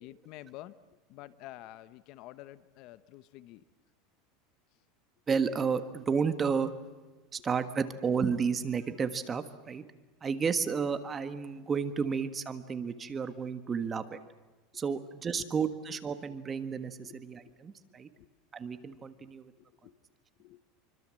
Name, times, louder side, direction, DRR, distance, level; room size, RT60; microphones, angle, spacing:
voice 1, 0.0-0.7 1.1-3.6 13.8-13.9 15.3-15.5 17.0-17.5 18.1-18.3 19.2-20.0 20.4-20.6, left 15 dB, 50° left, 15 dB, 1.0 m, -49 dB
voice 2, 5.3-6.8 7.3-9.8 10.2-14.2 14.7-18.1 18.5-19.5, right 6 dB, 20° right, 10 dB, 1.5 m, -32 dB
26.0 x 24.5 x 7.7 m, 1.2 s
supercardioid pair, 145°, 0 cm